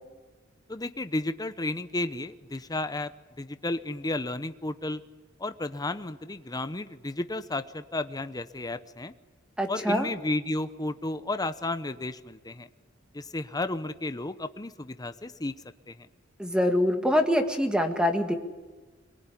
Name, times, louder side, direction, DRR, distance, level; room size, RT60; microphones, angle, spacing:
voice 1, 0.7-3.1 3.4-5.0 5.4-9.1 9.7-12.7 13.1-15.5 15.9-16.1, left 2 dB, 20° left, 11 dB, 0.9 m, -32 dB
voice 2, 9.6-10.1 16.4-18.3, left 1 dB, 5° right, 5 dB, 1.9 m, -24 dB
24.0 x 21.5 x 9.9 m, 1.3 s
head